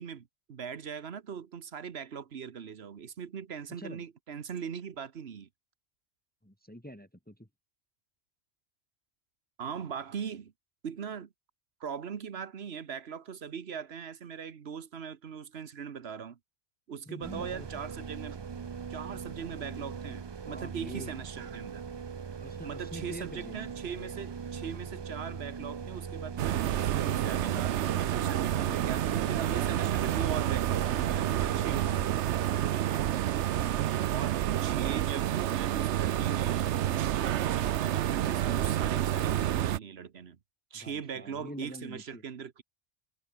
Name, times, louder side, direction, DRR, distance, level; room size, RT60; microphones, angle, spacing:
voice 1, 0.0-5.5 9.6-10.5 10.8-11.3 11.8-16.4 16.9-18.4 18.9-21.8 22.6-32.0 32.7-33.0 34.1-40.4 40.7-42.6, right 7 dB, 65° right, 1.3 m, -40 dB
voice 2, 6.4-7.5 17.1-17.7 20.5-21.1 22.4-23.6 32.5-33.0 33.6-33.9 40.7-42.2, equal, 10° left, 3.1 m, -46 dB
sound 1, 17.2-32.2, right 6 dB, 40° right, 0.3 m, -40 dB
sound 2, 26.4-39.8, right 12 dB, 85° right, 1.0 m, -29 dB
omnidirectional pair, 1.1 m